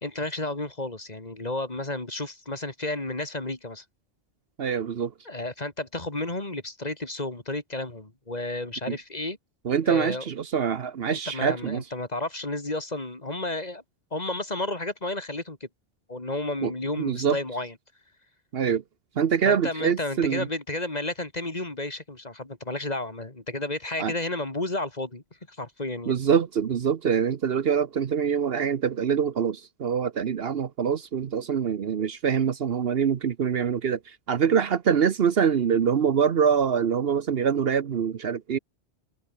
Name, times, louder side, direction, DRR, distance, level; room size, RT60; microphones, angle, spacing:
voice 1, 0.0-3.8 5.2-9.4 9.8-10.3 11.1-13.8 14.1-15.7 16.1-17.7 19.5-26.2, left 2 dB, 35° left, 2.8 m, -32 dB
voice 2, 4.6-5.1 9.6-11.8 16.6-16.7 17.0-17.4 18.5-18.8 19.2-20.5 24.0-24.1 26.1-38.6, right 7 dB, 60° right, 1.1 m, -24 dB
omnidirectional pair, 1.1 m